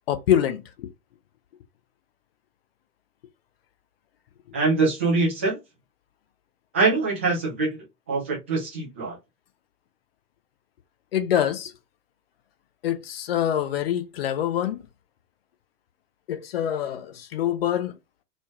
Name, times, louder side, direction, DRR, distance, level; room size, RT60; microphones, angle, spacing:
voice 1, 0.1-0.9 11.1-11.7 12.8-14.8 16.3-17.9, left 10 dB, 40° left, 0.6 m, -25 dB
voice 2, 4.5-5.6 6.7-7.8 8.1-9.2, right 3 dB, 10° right, 0.4 m, -23 dB
4.3 x 3.0 x 2.3 m
figure-of-eight pair, 115°, 48 cm